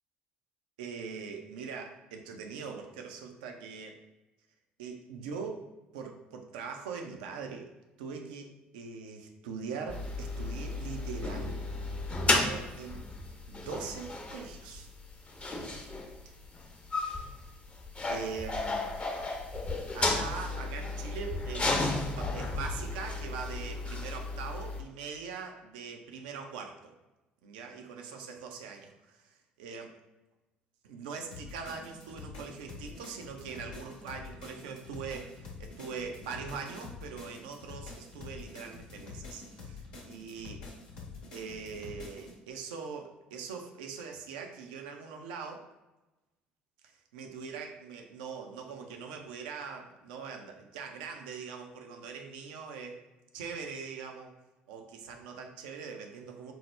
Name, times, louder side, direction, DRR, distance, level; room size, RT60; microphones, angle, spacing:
voice 1, 0.8-4.0 4.8-5.6 5.9-7.7 8.0-11.6 12.3-13.1 13.5-14.9 18.1-18.9 19.8-26.9 27.4-30.0 30.8-40.6 41.3-45.7 46.8-53.0 53.3-54.3 54.7-56.5, right 5 dB, 75° right, 3 dB, 0.4 m, -42 dB
sound 1, 9.9-24.8, left 2 dB, 25° left, 0.6 m, -33 dB
sound 2, 31.3-42.3, left 4 dB, 80° left, 0.8 m, -46 dB
4.5 x 2.1 x 3.1 m, 1.0 s
hypercardioid pair, 55°, 5 cm